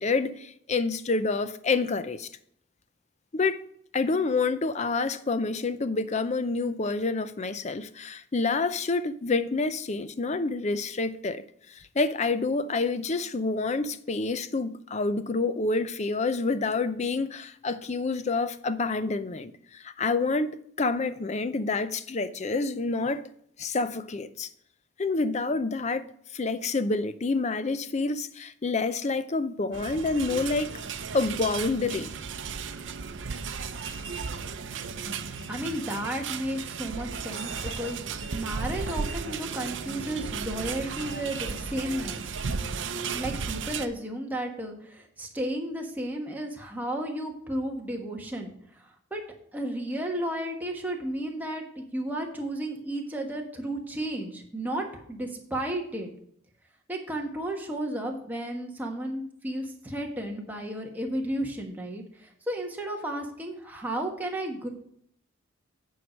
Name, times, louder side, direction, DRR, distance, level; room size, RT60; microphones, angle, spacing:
voice 1, 0.0-2.3 3.3-3.6 3.9-11.4 11.7-23.2 23.6-24.5 25.0-26.1 26.3-30.7 31.1-32.1, left 3 dB, 35° left, 0.5 m, -28 dB
sound 1, 29.7-43.9, right 5 dB, 75° right, 0.6 m, -35 dB
voice 2, 35.5-38.0 38.3-42.2 43.1-48.8 49.1-49.2 49.5-56.1 56.9-64.7, right 1 dB, 10° right, 1.4 m, -33 dB
9.1 x 4.8 x 6.4 m
head